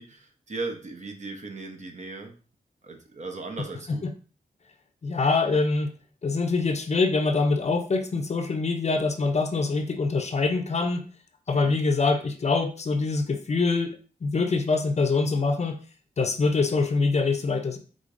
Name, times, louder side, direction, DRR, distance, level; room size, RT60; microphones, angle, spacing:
voice 1, 0.0-2.4 2.8-4.0 11.5-11.8, right 3 dB, 45° right, 3 dB, 0.8 m, -37 dB
voice 2, 5.0-5.9 6.2-11.0 11.5-15.8 16.2-17.8, left 3 dB, 40° left, 6 dB, 0.6 m, -24 dB
5.1 x 3.7 x 2.6 m, 0.37 s
wide cardioid pair, 130°, 17 cm